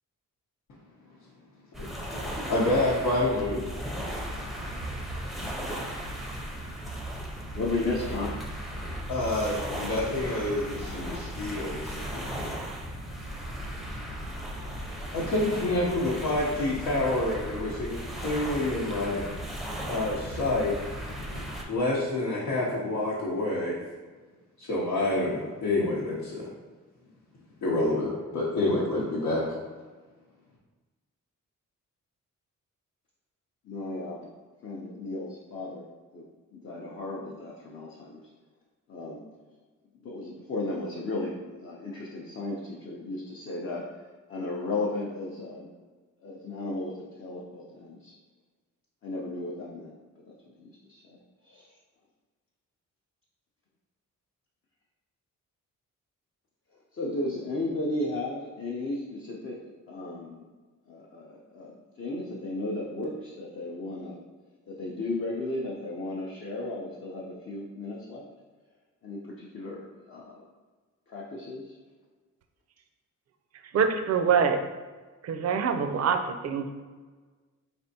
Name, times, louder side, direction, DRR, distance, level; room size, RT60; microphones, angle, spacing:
sound 1, 1.7-21.6, equal, ahead, 0.5 m, -36 dB
voice 1, 2.5-3.6 9.1-12.3 15.1-19.2 19.9-20.7 21.7-23.8 24.6-26.5 27.6-29.4, left 2 dB, 85° left, -6 dB, 0.8 m, -28 dB
voice 2, 7.5-8.7 33.6-34.3 34.6-35.9 36.1-36.2 36.5-38.2 38.9-39.2 40.0-43.9 44.3-45.7 46.2-48.1 49.0-49.9 50.3-51.8 56.9-60.4 60.9-64.2 64.7-68.3 69.0-70.4 71.1-71.7, left 2 dB, 45° left, -4 dB, 0.5 m, -35 dB
voice 3, 73.7-74.6 75.2-76.7, right 6 dB, 55° right, 6 dB, 0.4 m, -25 dB
4.3 x 3.3 x 2.7 m, 1.4 s
wide cardioid pair, 145°, 31 cm